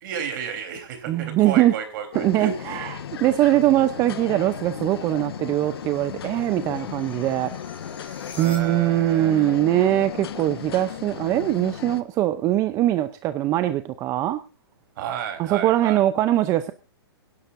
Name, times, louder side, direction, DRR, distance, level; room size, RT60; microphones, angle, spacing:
voice 1, 0.0-2.8 8.4-9.6 15.0-16.0, right 8 dB, 50° right, 6 dB, 3.7 m, -32 dB
voice 2, 1.1-1.7 2.1-2.9 3.2-7.5 8.4-14.4 15.4-16.7, right 14 dB, 25° right, 11 dB, 0.6 m, -22 dB
sound 1, 2.1-12.0, left 9 dB, 65° left, 1.3 m, -36 dB
sound 2, 4.1-9.1, left 2 dB, 10° left, 3.1 m, -48 dB
24.0 x 10.5 x 2.6 m, 0.30 s
hypercardioid pair, 145°, 14 cm